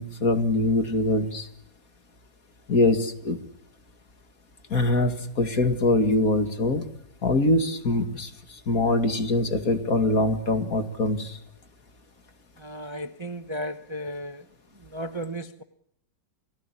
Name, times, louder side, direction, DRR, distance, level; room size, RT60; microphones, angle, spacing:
voice 1, 0.0-1.5 2.7-3.4 4.7-6.9 7.2-11.4, left 2 dB, 55° left, 2.8 m, -23 dB
voice 2, 12.6-14.4 14.9-15.6, equal, 20° right, 0.9 m, -34 dB
29.5 x 19.5 x 10.0 m
omnidirectional pair, 1.9 m